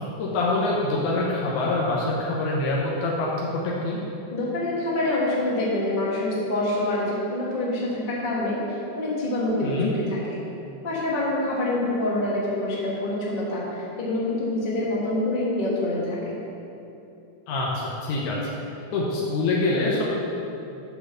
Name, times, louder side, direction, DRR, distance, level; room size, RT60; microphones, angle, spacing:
voice 1, 0.2-4.0 9.6-9.9 17.5-18.4 18.9-20.0, left 2 dB, 80° left, -4 dB, 2.4 m, -25 dB
voice 2, 4.3-8.6 8.9-10.4 10.8-16.3, left 1 dB, 35° left, -6 dB, 0.8 m, -26 dB
9.6 x 3.6 x 6.8 m, 2.8 s
omnidirectional pair, 3.5 m